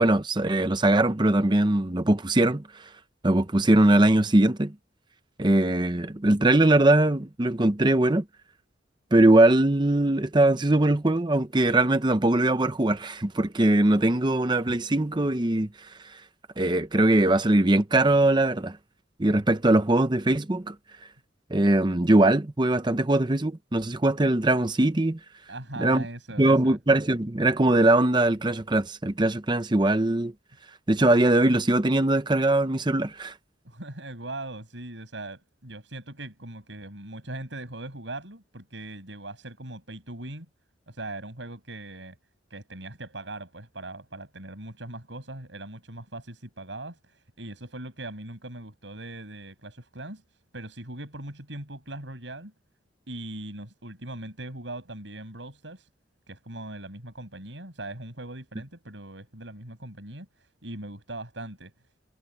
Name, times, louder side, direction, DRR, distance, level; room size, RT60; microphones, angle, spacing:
voice 1, 0.0-2.9 3.2-4.7 5.4-8.2 9.1-16.2 16.6-18.8 19.2-20.7 21.5-25.2 25.8-26.1 26.4-30.3 30.9-33.3, right 1 dB, 25° right, 0.8 m, -21 dB
voice 2, 25.5-26.8 33.6-40.5 40.9-42.2 42.5-50.2 50.5-52.5 53.1-55.9 56.3-61.7, right 2 dB, 75° right, 6.8 m, -40 dB
head